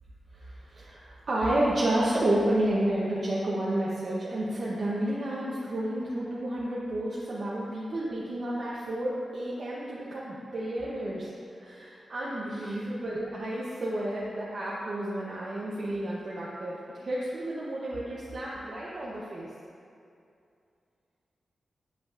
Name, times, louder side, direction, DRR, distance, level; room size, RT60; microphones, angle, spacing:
voice 1, 0.3-11.3 11.6-19.5, right 1 dB, 45° right, -7 dB, 0.7 m, -31 dB
7.6 x 5.2 x 2.4 m, 2.5 s
wide cardioid pair, 160°, 0 cm